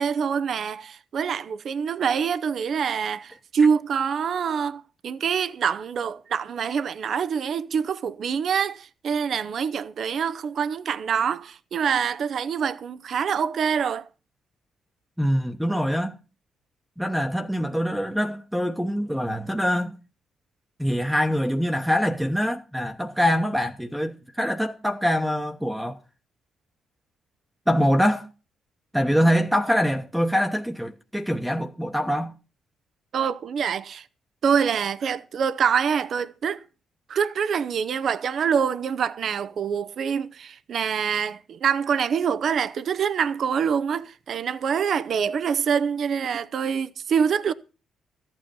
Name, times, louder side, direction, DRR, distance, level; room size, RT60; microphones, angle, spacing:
voice 1, 0.0-14.0 33.1-34.1 34.4-36.6 37.1-47.5, right 7 dB, 60° right, 0.7 m, -25 dB
voice 2, 15.2-16.2 17.0-19.9 20.8-26.0 27.7-28.3 28.9-32.3, equal, ahead, 1.0 m, -24 dB
14.0 x 9.0 x 5.3 m
cardioid pair, 90°, 0 cm